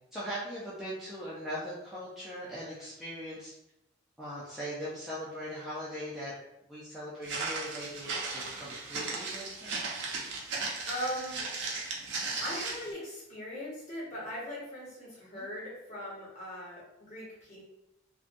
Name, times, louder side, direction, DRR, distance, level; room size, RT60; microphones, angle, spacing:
voice 1, 0.1-3.5 4.2-6.3 6.7-9.7 15.2-15.5, equal, ahead, -10 dB, 0.4 m, -40 dB
Walk footsteps, 7.2-12.9, right 3 dB, 60° right, 0.5 m, -36 dB
voice 2, 10.9-11.6 12.4-17.6, equal, 35° left, -8 dB, 1.0 m, -39 dB
2.5 x 2.2 x 2.5 m, 0.87 s
head